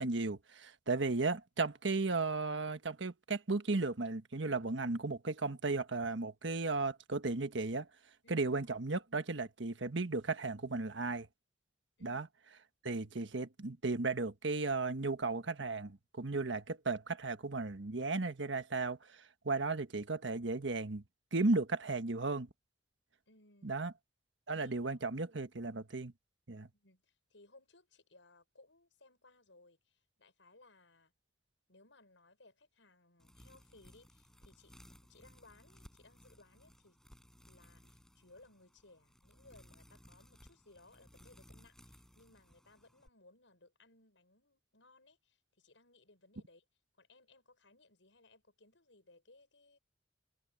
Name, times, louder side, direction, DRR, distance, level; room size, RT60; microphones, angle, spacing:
voice 1, 0.0-7.9 8.3-11.3 12.0-12.3 12.8-21.0 21.3-22.5 23.6-23.9 24.5-26.1 26.5-26.7, right 3 dB, 75° right, 1.3 m, -35 dB
voice 2, 23.3-23.8 24.5-25.0 26.7-31.1 31.7-34.8 35.1-37.0 37.4-46.6 47.0-49.8, left 2 dB, 85° left, 6.7 m, -63 dB
sound 1, 33.2-43.1, equal, 5° left, 4.9 m, -61 dB
head